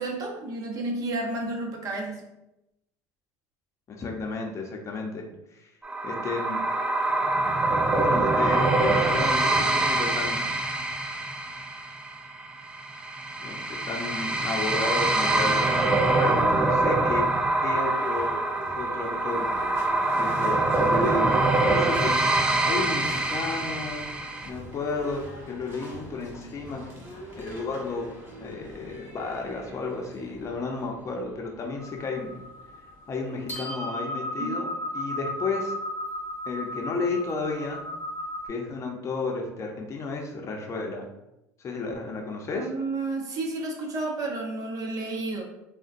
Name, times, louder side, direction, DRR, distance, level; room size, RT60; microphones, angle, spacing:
voice 1, 0.0-2.2 34.4-34.6 42.5-45.4, right 2 dB, 45° right, 1 dB, 0.7 m, -31 dB
voice 2, 3.9-5.2 5.5-5.7 6.0-6.7 7.9-10.6 13.4-17.3 17.6-18.4 18.7-19.5 20.1-24.1 24.4-25.2 25.5-28.0 28.4-32.4 33.1-35.8 36.5-37.8 38.4-41.1 41.6-42.7, left 3 dB, 35° left, 2 dB, 0.6 m, -32 dB
sound 1, 5.8-24.5, right 2 dB, 10° right, 0.4 m, -25 dB
Livestock farm animals working animals / Bell, 17.5-33.4, equal, 30° right, 1.1 m, -44 dB
sound 2, 31.8-38.5, left 1 dB, 20° left, 1.1 m, -35 dB
3.7 x 2.1 x 2.5 m, 0.91 s
supercardioid pair, 95°, 8 cm